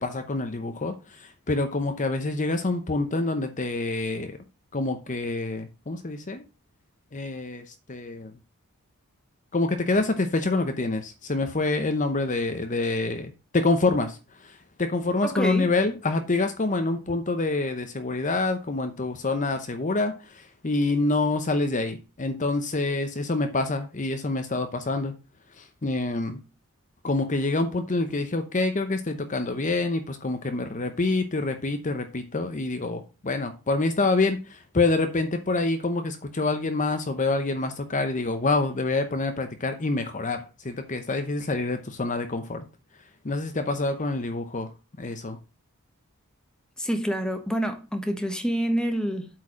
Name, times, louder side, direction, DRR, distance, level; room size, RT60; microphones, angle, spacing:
voice 1, 0.0-4.4 4.7-6.4 7.1-7.6 7.9-8.3 9.5-14.2 14.8-25.1 25.6-26.4 27.0-42.6 43.2-44.7 45.0-45.4, left 3 dB, 35° left, 0.8 m, -26 dB
voice 2, 15.2-15.7 46.8-49.3, equal, 5° left, 1.2 m, -27 dB
8.3 x 4.6 x 6.2 m
head